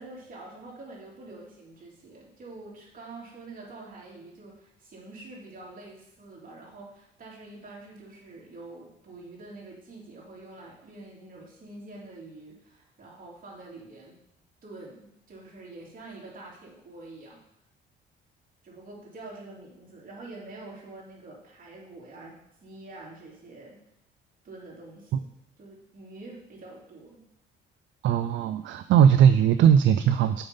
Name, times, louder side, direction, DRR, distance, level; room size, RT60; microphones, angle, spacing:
voice 1, 0.0-14.2 14.6-17.4 18.6-23.8 24.4-25.3 25.6-27.2, right 2 dB, 45° right, -4 dB, 3.2 m, -46 dB
voice 2, 28.0-30.4, right 8 dB, 70° right, 10 dB, 0.4 m, -19 dB
7.0 x 5.6 x 5.4 m, 0.79 s
cardioid pair, 90°, 20 cm